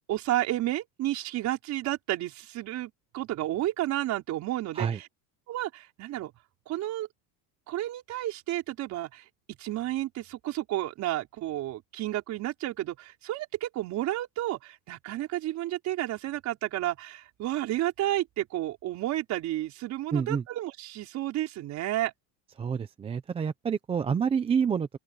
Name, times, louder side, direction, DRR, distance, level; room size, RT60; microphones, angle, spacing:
voice 1, 0.1-4.9 5.5-6.3 6.7-7.1 7.7-9.2 9.6-22.1, right 14 dB, 40° right, 5.1 m, -31 dB
voice 2, 20.1-20.4 22.6-24.9, right 6 dB, 15° right, 0.6 m, -28 dB
open air
cardioid pair, 165°, 44 cm